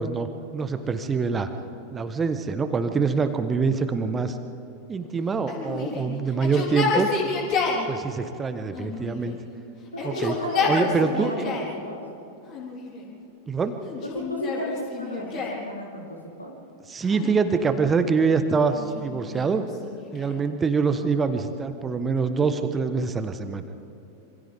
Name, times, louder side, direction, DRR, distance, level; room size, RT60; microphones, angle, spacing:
voice 1, 0.0-1.5 1.9-4.4 4.9-7.1 7.9-9.4 10.0-10.3 10.7-11.5 13.5-13.7 16.9-19.7 20.1-23.6, right 5 dB, 20° right, 9 dB, 1.3 m, -25 dB
Yell, 5.5-7.9 8.7-9.5 9.9-11.8 12.5-13.1 13.8-15.7 17.0-17.9 18.7-20.4, left 4 dB, 35° left, 4.2 m, -30 dB
voice 2, 9.9-12.0 14.1-16.5 20.3-20.4, left 1 dB, 85° left, -1 dB, 3.8 m, -34 dB
27.0 x 26.0 x 3.7 m, 2.9 s
figure-of-eight pair, 90°, 0 cm